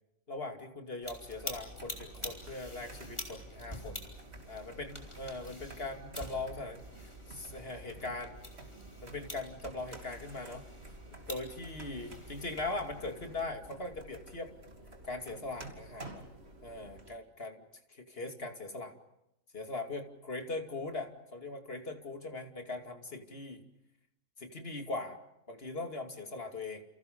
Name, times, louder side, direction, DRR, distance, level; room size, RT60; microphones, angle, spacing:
voice 1, 0.3-4.0 4.5-6.8 7.3-8.3 9.0-10.6 11.1-14.5 15.1-16.2 16.6-17.6 17.9-18.9 19.5-23.6 24.4-25.2 25.5-26.8, left 2 dB, 40° left, 5 dB, 2.9 m, -40 dB
sound 1, 1.0-13.4, equal, 20° left, 4.8 m, -47 dB
sound 2, 1.4-17.1, right 2 dB, 45° right, 3.2 m, -52 dB
30.0 x 28.5 x 5.4 m, 0.86 s
omnidirectional pair, 1.5 m